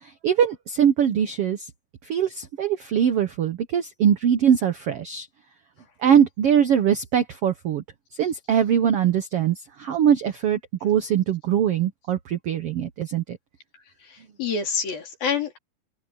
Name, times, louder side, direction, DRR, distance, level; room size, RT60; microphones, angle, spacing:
voice 1, 0.0-1.7 2.0-5.3 6.0-7.8 8.2-13.4, right 9 dB, 90° right, 1.3 m, -22 dB
voice 2, 14.1-15.6, left 6 dB, 75° left, 5.9 m, -27 dB
open air
omnidirectional pair, 4.2 m